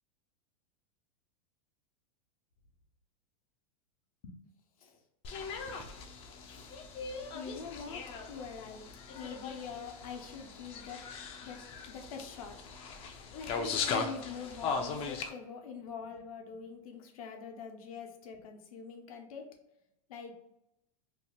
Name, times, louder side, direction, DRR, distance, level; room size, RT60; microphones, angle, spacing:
sound 1, 5.2-15.3, left 5 dB, 30° left, 0.4 m, -39 dB
voice 1, 7.3-8.0 8.3-8.9 9.1-11.6 11.9-12.6 13.4-19.5 20.1-20.4, left 6 dB, 75° left, 2 dB, 0.7 m, -45 dB
2.7 x 2.2 x 3.4 m, 0.85 s
supercardioid pair, 135°, 18 cm